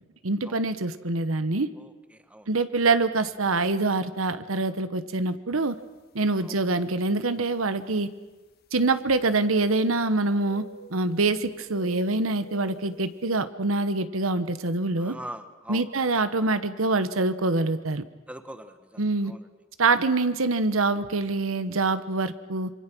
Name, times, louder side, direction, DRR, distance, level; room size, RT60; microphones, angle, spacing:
voice 1, 0.2-1.7 2.5-5.8 6.1-8.1 8.7-10.6 10.9-15.2 15.7-18.0 19.0-19.3 19.8-22.7, right 3 dB, 75° right, 12 dB, 1.2 m, -25 dB
voice 2, 1.7-2.5 6.4-6.6 15.0-15.8 18.3-19.4, right 1 dB, 5° right, 9 dB, 1.3 m, -42 dB
sound 1, 6.0-6.1 6.9-7.0 8.9-10.1 10.4-11.3 11.7-13.0, equal, 50° left, 1.7 m, -47 dB
26.5 x 24.0 x 6.2 m, 1.2 s
head